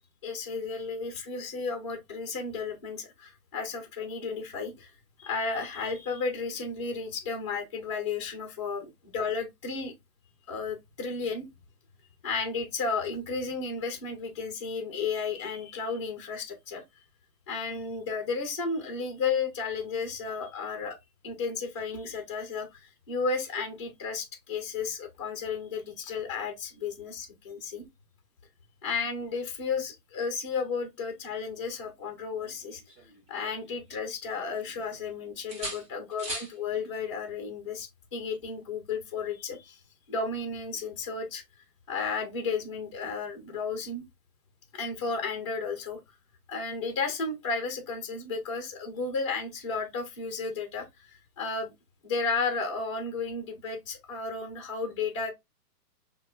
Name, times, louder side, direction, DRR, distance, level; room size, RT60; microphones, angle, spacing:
voice 1, 0.2-4.9 5.2-9.9 10.5-11.5 12.2-16.8 17.5-21.0 21.2-27.8 28.8-32.8 33.3-39.8 40.1-41.4 41.9-44.1 44.7-46.0 46.5-51.7 52.0-55.3, left 4 dB, 20° left, 0.4 m, -33 dB
sound 1, 32.4-33.9 34.3-35.1 35.5-36.6 38.4-38.6, right 1 dB, 15° right, 1.9 m, -41 dB
5.5 x 2.2 x 2.2 m
hypercardioid pair, 160°, 48 cm